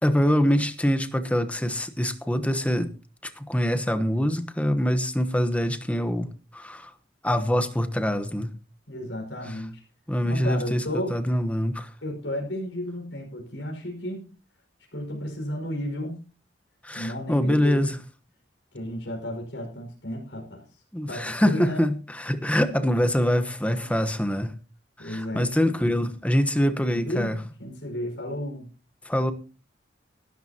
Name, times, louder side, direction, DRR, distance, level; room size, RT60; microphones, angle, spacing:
voice 1, 0.0-2.9 3.2-6.9 7.2-8.5 9.5-9.6 10.1-10.8 11.1-11.9 16.8-18.0 20.9-24.5 25.0-27.4 29.0-29.3, equal, 10° left, 10 dB, 1.1 m, -24 dB
voice 2, 8.9-9.8 10.2-11.2 12.0-14.3 14.9-16.2 16.9-17.9 18.7-20.6 21.1-21.8 23.8-23.9 25.0-25.5 26.9-28.7, left 1 dB, 75° left, 0 dB, 5.5 m, -33 dB
18.5 x 12.5 x 2.9 m, 0.35 s
head